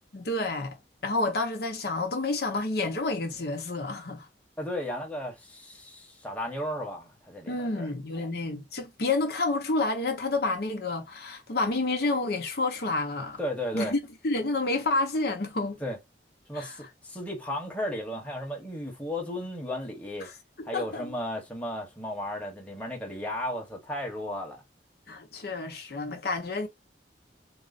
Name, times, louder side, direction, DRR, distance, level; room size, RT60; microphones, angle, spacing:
voice 1, 0.1-0.8 1.0-4.3 7.5-13.4 13.7-14.0 14.2-15.8 16.5-16.8 20.2-20.4 20.7-21.1 25.1-26.7, left 2 dB, 60° left, 0.8 m, -29 dB
voice 2, 4.6-7.9 13.4-13.9 15.8-16.0 16.5-20.3 20.6-24.6, left 1 dB, 10° left, 1.1 m, -34 dB
3.9 x 2.0 x 4.0 m
head